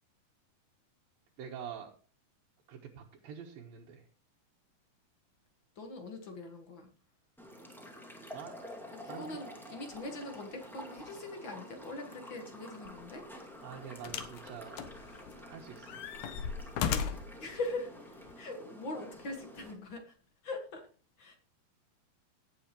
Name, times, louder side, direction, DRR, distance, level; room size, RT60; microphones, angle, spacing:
voice 1, 1.4-1.9 2.7-4.1 8.3-8.5 9.1-9.3 13.6-15.0 15.5-16.0, right 8 dB, 80° right, -1 dB, 2.9 m, -46 dB
voice 2, 5.7-6.9 8.9-13.2 17.4-17.9 18.4-20.1 20.4-20.8 21.2-21.4, left 2 dB, 45° left, 4 dB, 1.7 m, -41 dB
sound 1, 7.4-19.7, equal, ahead, 1.1 m, -49 dB
sound 2, 12.9-13.0 14.0-14.4 14.8-15.5 15.9-17.4 18.3-18.4, left 7 dB, 70° left, 2.3 m, -35 dB
17.5 x 7.7 x 3.0 m, 0.39 s
omnidirectional pair, 4.1 m